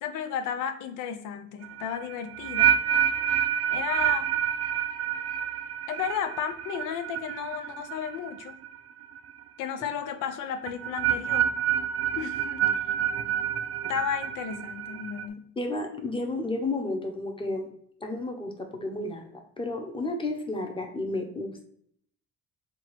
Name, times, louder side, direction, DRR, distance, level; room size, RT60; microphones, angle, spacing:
voice 1, 0.0-2.8 3.7-4.3 5.9-8.6 9.6-11.5 12.2-12.7 13.9-15.5, left 8 dB, 85° left, 8 dB, 0.5 m, -33 dB
sound 1, 1.6-8.8 9.0-9.4 10.7-15.3, right 10 dB, 55° right, 0.5 m, -28 dB
voice 2, 15.6-17.7 18.0-21.7, left 2 dB, 15° left, 3 dB, 0.8 m, -32 dB
3.7 x 2.4 x 4.6 m, 0.65 s
cardioid pair, 90°, 30 cm